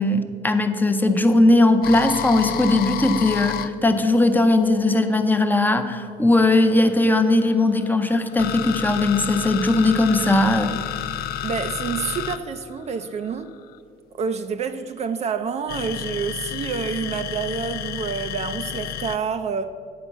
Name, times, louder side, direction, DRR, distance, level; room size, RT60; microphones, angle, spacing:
voice 1, 0.0-10.7, left 2 dB, 10° left, 0.6 m, -19 dB
sound 1, 1.8-5.3 6.4-13.8 15.7-19.2, left 10 dB, 65° left, 0.5 m, -30 dB
voice 2, 11.2-13.5 14.2-19.7, right 6 dB, 40° right, 0.4 m, -28 dB
9.5 x 4.4 x 7.1 m
cardioid pair, 110°, 17 cm